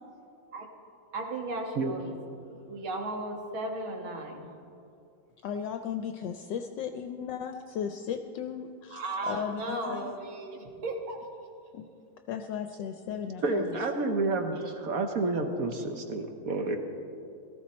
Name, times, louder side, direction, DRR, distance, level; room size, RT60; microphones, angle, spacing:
voice 1, 1.1-2.1 2.5-4.5 8.9-11.5, right 2 dB, 80° right, 2 dB, 2.3 m, -36 dB
voice 2, 5.4-10.1 11.7-11.9 12.3-13.7, left 8 dB, 75° left, 7 dB, 1.2 m, -36 dB
voice 3, 13.4-16.8, right 3 dB, 55° right, 5 dB, 1.2 m, -29 dB
18.0 x 13.5 x 4.2 m, 2.5 s
omnidirectional pair, 2.2 m